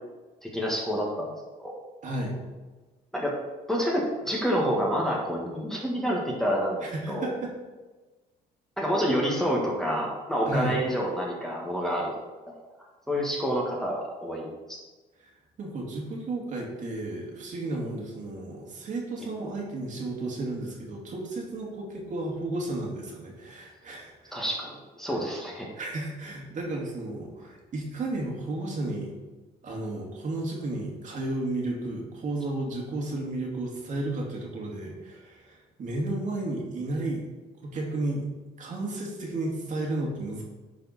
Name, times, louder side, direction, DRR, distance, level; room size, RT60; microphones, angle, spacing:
voice 1, 0.4-1.3 1.6-1.8 3.1-3.4 3.7-7.3 8.8-12.2 12.5-12.6 13.1-14.8 24.3-25.7, equal, 5° left, -4 dB, 1.8 m, -28 dB
voice 2, 2.0-2.4 6.8-7.5 10.5-10.8 15.2-15.3 15.6-24.4 25.8-29.1 29.6-37.2 37.6-38.3 38.6-40.4, right 2 dB, 50° right, -1 dB, 2.4 m, -33 dB
10.5 x 5.2 x 4.3 m, 1.2 s
cardioid pair, 110°, 17 cm